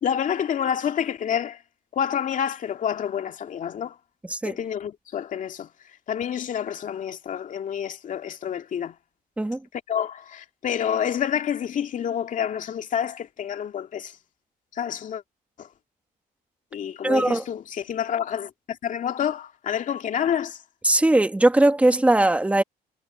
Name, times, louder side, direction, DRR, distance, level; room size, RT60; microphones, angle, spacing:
voice 1, 0.0-1.6 1.9-4.0 4.4-5.7 6.1-9.0 9.7-14.2 14.7-15.2 15.6-15.7 16.7-20.6, left 9 dB, 50° left, 2.1 m, -28 dB
voice 2, 17.0-17.4 20.8-22.6, right 1 dB, 10° right, 1.8 m, -19 dB
cardioid pair, 110°, 17 cm